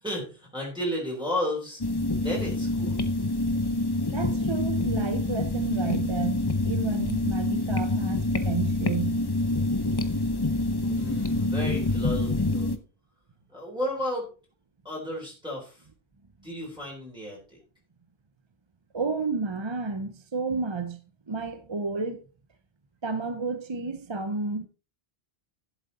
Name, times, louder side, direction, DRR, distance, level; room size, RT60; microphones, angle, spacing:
voice 1, 0.0-1.8 2.1-3.1 10.8-12.7 13.5-14.3 14.8-15.8 16.4-17.6, left 1 dB, 5° right, 3.6 m, -33 dB
sound 1, 1.8-12.8, left 2 dB, 25° left, 0.8 m, -26 dB
voice 2, 4.1-9.2 18.9-21.0 21.3-22.3 23.0-24.7, right 4 dB, 30° right, 0.7 m, -31 dB
11.5 x 7.4 x 4.1 m
omnidirectional pair, 1.0 m